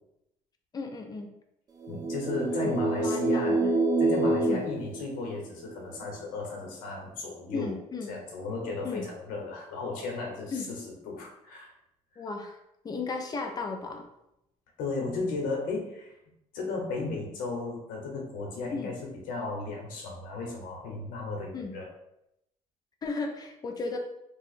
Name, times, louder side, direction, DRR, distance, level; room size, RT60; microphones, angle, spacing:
voice 1, 0.7-1.3 2.6-2.7 3.0-3.7 4.4-4.6 7.5-8.2 8.8-9.1 10.5-10.7 12.2-14.0 18.7-18.9 21.5-21.7 23.0-24.0, left 4 dB, 25° left, 4 dB, 0.5 m, -35 dB
sound 1, 1.8-5.7, right 2 dB, 25° right, 0.5 m, -27 dB
voice 2, 1.9-3.6 4.0-7.7 8.1-10.8 11.0-11.7 12.1-12.2 14.8-16.1 16.5-21.9, left 3 dB, 80° left, -1 dB, 1.0 m, -35 dB
2.7 x 2.4 x 4.0 m, 0.83 s
cardioid pair, 105°, 14 cm